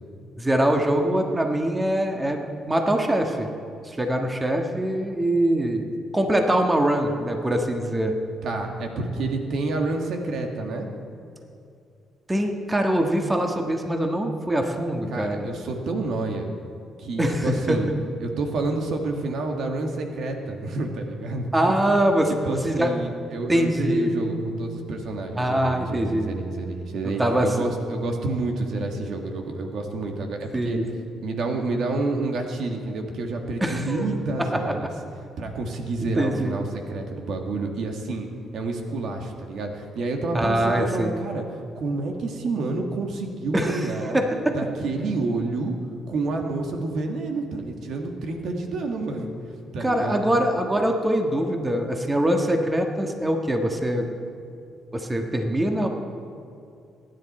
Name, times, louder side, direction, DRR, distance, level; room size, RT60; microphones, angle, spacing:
voice 1, 0.4-3.5 3.8-5.9 6.1-8.1 12.3-15.5 17.2-18.0 21.5-22.9 23.5-24.3 25.4-26.3 27.0-27.6 30.5-30.8 33.6-34.6 36.1-36.6 40.3-41.2 43.5-44.6 49.8-54.1 54.9-55.9, right 1 dB, 15° right, 3 dB, 1.5 m, -23 dB
voice 2, 8.4-10.9 15.1-16.5 17.0-17.9 18.2-22.0 22.4-30.8 31.2-34.9 35.4-38.3 38.5-41.4 41.8-44.2 44.5-45.8 46.1-49.3 49.7-50.4, right 3 dB, 70° right, 3 dB, 1.9 m, -29 dB
23.5 x 10.5 x 4.4 m, 2.6 s
cardioid pair, 90°, 0 cm